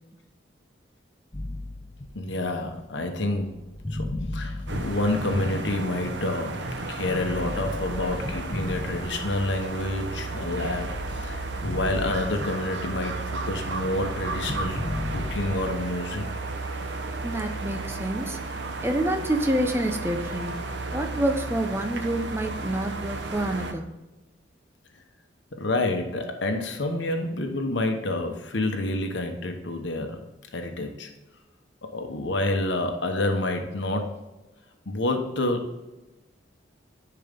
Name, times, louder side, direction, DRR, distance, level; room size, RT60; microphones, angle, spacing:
sound 1, 1.3-6.4 7.0-9.6 10.1-13.0 13.2-15.9, left 1 dB, 25° left, 0.8 m, -36 dB
voice 1, 2.1-3.6 3.9-4.1 4.3-14.8 15.1-16.3 25.5-30.3 30.5-31.1 31.8-34.2 34.9-35.8, left 2 dB, 75° left, 4 dB, 1.1 m, -28 dB
sound 2, 4.7-23.7, right 3 dB, 70° right, 0.9 m, -33 dB
voice 2, 17.2-18.4 18.8-20.6 20.9-23.9, right 1 dB, 15° right, 5 dB, 0.8 m, -27 dB
10.5 x 4.8 x 3.6 m, 1.0 s
head